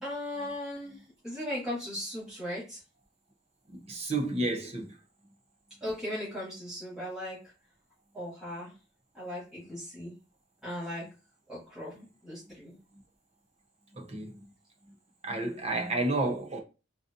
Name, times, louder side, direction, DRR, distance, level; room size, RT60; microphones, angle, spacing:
voice 1, 0.0-2.8 5.8-7.4 8.1-8.7 9.1-10.1 10.6-11.1 11.5-12.8, left 1 dB, 5° right, 2.1 m, -37 dB
voice 2, 3.9-4.9 14.0-14.3 15.2-16.6, right 2 dB, 30° right, 0.6 m, -30 dB
3.8 x 2.7 x 2.5 m
head